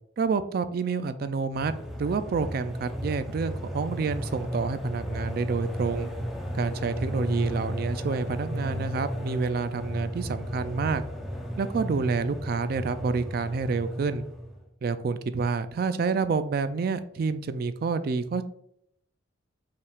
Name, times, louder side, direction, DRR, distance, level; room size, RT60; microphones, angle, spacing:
voice 1, 0.2-1.7 2.0-6.1 6.5-11.0 11.6-14.2 14.8-18.4, right 4 dB, 50° right, 12 dB, 0.3 m, -28 dB
sound 1, 1.5-14.6, equal, ahead, 0.6 m, -34 dB
5.4 x 3.5 x 2.3 m, 0.73 s
head